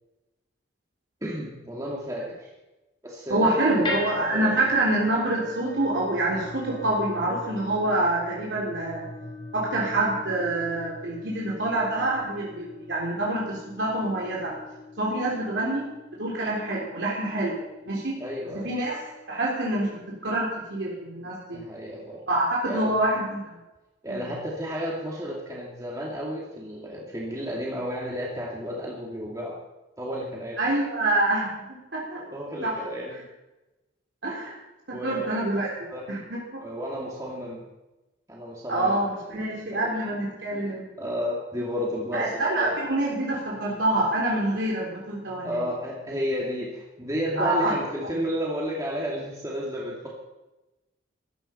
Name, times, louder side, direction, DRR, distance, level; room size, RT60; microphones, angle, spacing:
voice 1, 1.2-2.5 3.0-4.5 18.2-18.7 21.5-22.2 22.6-23.0 24.0-29.5 30.0-30.6 32.1-33.1 34.9-35.4 35.9-36.1 36.6-37.6 38.3-39.0 39.3-39.9 41.0-42.7 45.4-50.1, equal, 20° right, -4 dB, 2.4 m, -32 dB
voice 2, 3.3-9.0 9.5-14.5 15.0-15.9 16.2-17.6 17.9-18.2 18.5-19.0 19.3-21.6 22.3-23.6 24.1-24.3 30.6-32.2 32.6-32.7 34.2-34.5 34.9-35.7 36.1-36.6 38.7-40.9 42.1-45.6 47.4-47.7, right 1 dB, 70° right, -5 dB, 3.6 m, -26 dB
sound 1, 3.8-20.1, left 2 dB, 25° left, 3.5 m, -41 dB
15.0 x 13.5 x 5.7 m, 1.0 s
head